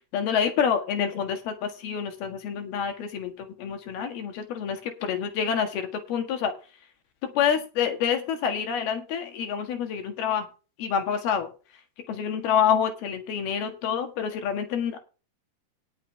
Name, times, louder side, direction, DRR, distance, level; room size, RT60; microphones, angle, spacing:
voice 1, 0.0-6.5 7.4-10.5 10.8-11.5 12.1-15.0, left 8 dB, 70° left, 6 dB, 3.6 m, -27 dB
18.5 x 7.5 x 3.4 m, 0.33 s
omnidirectional pair, 4.8 m